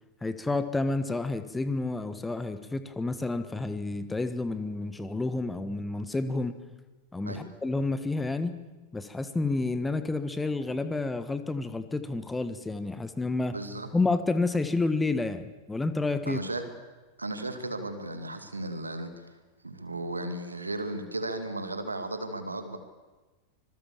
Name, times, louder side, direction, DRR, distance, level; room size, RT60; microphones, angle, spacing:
voice 1, 0.2-6.6 7.1-8.6 8.9-13.6 13.9-16.4, left 3 dB, 10° left, 11 dB, 1.4 m, -30 dB
voice 2, 13.5-13.9 16.3-16.6 17.2-19.3 19.6-22.8, right 2 dB, 80° right, 8 dB, 2.5 m, -35 dB
26.0 x 21.0 x 7.3 m, 1.2 s
figure-of-eight pair, 90°, 0 cm